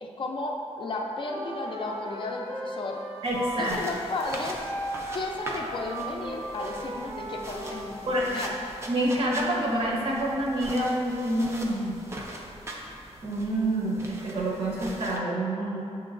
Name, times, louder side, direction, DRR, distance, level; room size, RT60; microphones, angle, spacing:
voice 1, 0.0-3.0 3.6-4.7 5.1-8.5, left 2 dB, 50° left, 1 dB, 0.4 m, -34 dB
Wind instrument woodwind instrument, 1.2-7.9, right 1 dB, 90° right, 1.1 m, -37 dB
sound 1, 3.2-15.2, right 1 dB, 25° right, 0.4 m, -41 dB
voice 2, 3.2-3.8 8.1-8.3 8.9-12.0 13.2-15.8, right 1 dB, 55° right, -4 dB, 0.8 m, -27 dB
6.9 x 3.0 x 2.4 m, 2.6 s
wide cardioid pair, 165°, 11 cm